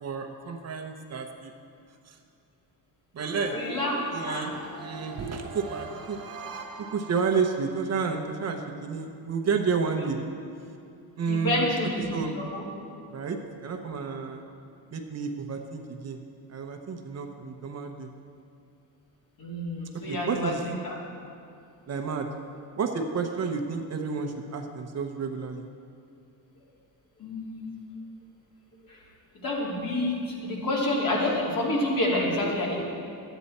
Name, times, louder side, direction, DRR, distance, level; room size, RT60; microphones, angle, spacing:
voice 1, 0.0-1.5 2.1-2.2 3.1-3.6 4.1-6.2 6.8-10.2 11.2-11.7 12.1-12.4 13.1-14.5 14.9-18.1 20.1-20.6 21.9-22.3 22.8-25.7, right 5 dB, 40° right, 4 dB, 0.8 m, -31 dB
sound 1, 3.3-7.9, right 4 dB, 65° right, 1.7 m, -42 dB
voice 2, 3.5-3.9 4.3-4.5 11.3-12.6 19.4-20.5 20.8-20.9 27.2-27.8 28.9-29.0 29.4-32.8, left 1 dB, 60° left, -3 dB, 2.6 m, -28 dB
12.5 x 9.1 x 4.2 m, 2.5 s
cardioid pair, 130°, 38 cm